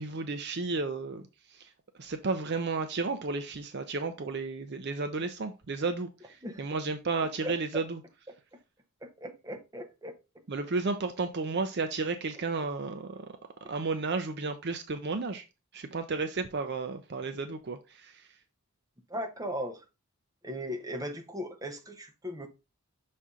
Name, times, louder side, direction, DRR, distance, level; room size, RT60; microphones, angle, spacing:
voice 1, 0.0-1.7 2.0-8.0 10.5-13.3 13.7-15.5 15.7-18.3, right 3 dB, 50° right, 0.5 m, -33 dB
voice 2, 7.2-7.8 9.0-10.1 19.1-19.8 20.4-22.5, equal, 15° right, 0.9 m, -38 dB
6.1 x 4.2 x 3.7 m
head